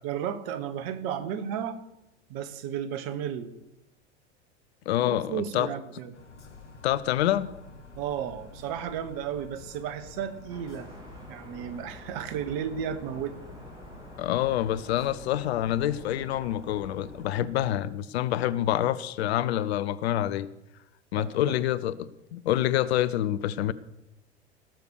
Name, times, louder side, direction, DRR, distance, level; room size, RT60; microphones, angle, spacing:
voice 1, 0.0-1.8 2.3-3.5 5.0-6.1 8.0-10.9 11.3-13.4 21.2-21.6, right 9 dB, 50° right, 13 dB, 1.3 m, -33 dB
voice 2, 4.9-5.7 6.8-7.5 14.2-20.5 21.1-23.7, left 12 dB, 65° left, 16 dB, 0.7 m, -27 dB
sound 1, 6.1-17.3, left 3 dB, 85° left, 1.6 m, -49 dB
sound 2, 10.5-17.8, equal, 10° right, 3.0 m, -48 dB
17.5 x 6.9 x 6.5 m, 0.89 s
figure-of-eight pair, 80°, 35 cm